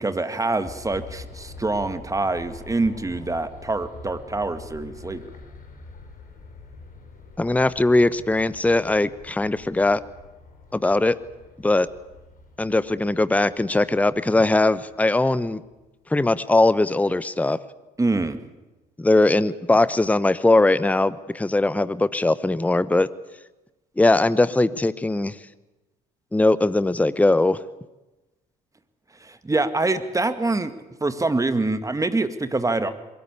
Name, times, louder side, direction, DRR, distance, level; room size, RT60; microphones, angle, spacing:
voice 1, 0.0-5.3 18.0-18.4 29.2-30.7 31.0-32.9, right 2 dB, 15° right, 10 dB, 2.0 m, -25 dB
sound 1, 0.6-15.9 16.5-16.6, left 3 dB, 45° left, 6.0 m, -45 dB
voice 2, 7.4-10.0 10.7-11.2 11.6-11.9 12.6-15.6 16.1-17.6 19.0-23.1 24.0-25.3 26.3-27.6, left 2 dB, 5° left, 17 dB, 0.9 m, -20 dB
22.5 x 21.5 x 8.4 m, 1.1 s
figure-of-eight pair, 55°, 21 cm